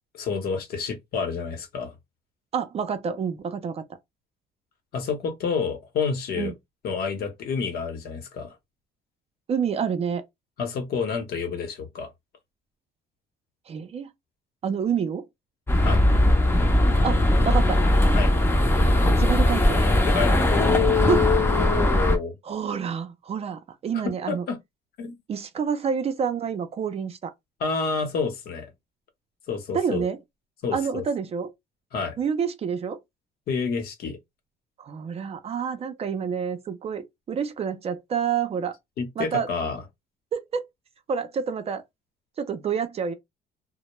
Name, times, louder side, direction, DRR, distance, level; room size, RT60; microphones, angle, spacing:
voice 1, 0.1-1.9 4.9-6.5 6.8-8.6 10.6-12.1 15.8-16.0 18.1-18.3 20.1-22.3 24.3-24.6 25.0-25.1 27.6-28.7 29.5-30.1 30.6-31.0 31.9-32.2 33.5-34.2 39.0-39.8, left 6 dB, 65° left, 0.9 m, -28 dB
voice 2, 2.5-3.8 6.3-6.5 9.5-10.2 13.7-14.1 14.6-15.3 17.0-17.8 19.2-19.8 21.1-21.3 22.4-24.4 25.3-27.3 29.7-30.2 30.7-31.5 32.2-33.0 34.8-38.7 39.2-39.5 40.3-40.6 41.1-41.8 42.4-43.1, right 7 dB, 35° right, 0.5 m, -28 dB
sound 1, 15.7-22.2, left 1 dB, 15° left, 0.6 m, -20 dB
2.1 x 2.0 x 3.0 m
cardioid pair, 110°, 17 cm